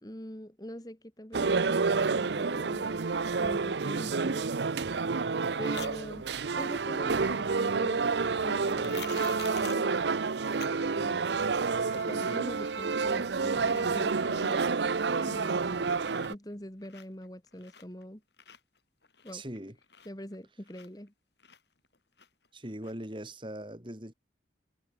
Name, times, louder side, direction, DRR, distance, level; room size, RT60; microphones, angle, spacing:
voice 1, 0.0-3.0 3.4-4.5 5.6-6.3 6.5-8.1 8.4-10.0 10.8-11.3 11.9-14.7 15.2-15.9 16.3-18.2 19.2-19.4 20.0-21.1, equal, 20° left, 2.3 m, -44 dB
sound 1, 1.3-16.3, right 4 dB, 85° right, 0.7 m, -29 dB
sound 2, 5.7-5.9 8.6-9.9 10.6-10.7 11.1-11.2 11.6-12.2 12.4-13.1 13.5-13.9 14.3-14.7 15.1-15.7 16.0-18.0 18.3-21.1 21.4-22.5 22.8-22.9, left 8 dB, 80° left, 5.6 m, -49 dB
voice 2, 19.3-19.8 22.5-24.1, right 1 dB, 30° right, 4.0 m, -40 dB
head